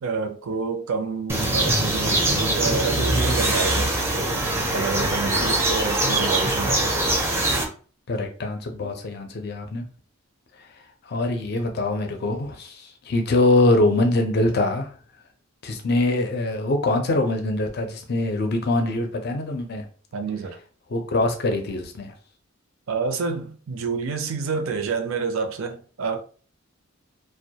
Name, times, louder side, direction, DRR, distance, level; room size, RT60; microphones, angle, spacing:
voice 1, 0.0-4.0 4.7-7.0 8.8-8.9 20.1-20.6 22.9-26.2, right 5 dB, 75° right, 0.4 m, -28 dB
sound 1, 1.3-7.6, right 1 dB, 10° right, 0.4 m, -22 dB
voice 2, 8.1-9.9 10.6-10.7 11.0-14.9 15.6-19.8 20.9-22.1, left 2 dB, 50° left, 0.4 m, -23 dB
2.2 x 2.1 x 2.7 m
head